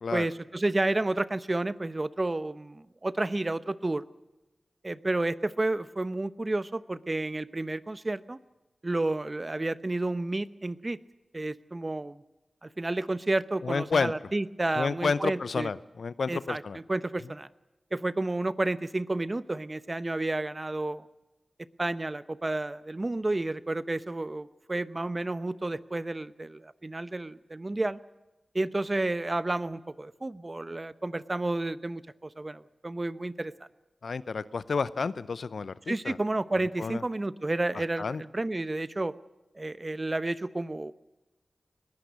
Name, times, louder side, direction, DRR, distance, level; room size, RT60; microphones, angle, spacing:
voice 1, 0.1-4.0 4.8-8.4 8.8-11.0 11.3-12.2 12.6-15.7 16.3-17.5 17.9-21.1 21.8-28.0 28.5-33.5 35.9-39.1 39.5-40.9, right 2 dB, 35° right, 16 dB, 0.9 m, -31 dB
voice 2, 13.6-14.1 14.8-16.8 34.0-36.2 36.8-37.0 37.7-38.2, left 4 dB, 80° left, 17 dB, 0.7 m, -30 dB
20.5 x 15.5 x 8.3 m, 1.1 s
cardioid pair, 40°, 0 cm